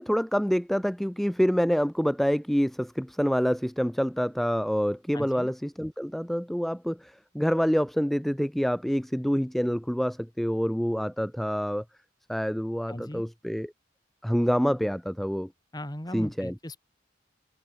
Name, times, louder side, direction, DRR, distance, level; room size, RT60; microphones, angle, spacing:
voice 1, 0.0-11.8 12.3-13.7 14.2-15.5 16.1-16.5, equal, ahead, 0.4 m, -27 dB
voice 2, 5.1-5.5 12.9-13.2 15.7-16.8, left 1 dB, 20° left, 2.9 m, -38 dB
head